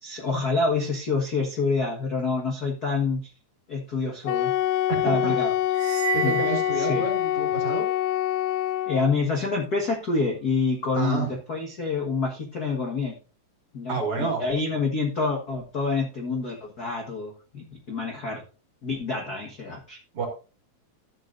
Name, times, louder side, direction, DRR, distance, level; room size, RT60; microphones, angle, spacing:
voice 1, 0.0-3.2 3.7-4.5 5.0-5.5 6.2-6.4 6.8-7.1 8.9-13.1 13.7-18.4 18.8-20.0, left 4 dB, 50° left, 0 dB, 1.2 m, -27 dB
Wind instrument woodwind instrument, 4.3-9.2, left 13 dB, 85° left, 2.4 m, -25 dB
voice 2, 4.9-5.4 6.1-7.8 10.9-11.3 13.9-14.4 20.1-20.3, right 4 dB, 45° right, 2 dB, 2.8 m, -29 dB
sound 1, 5.7-7.6, right 11 dB, 70° right, 1.9 m, -32 dB
13.5 x 8.1 x 2.6 m, 0.35 s
omnidirectional pair, 4.1 m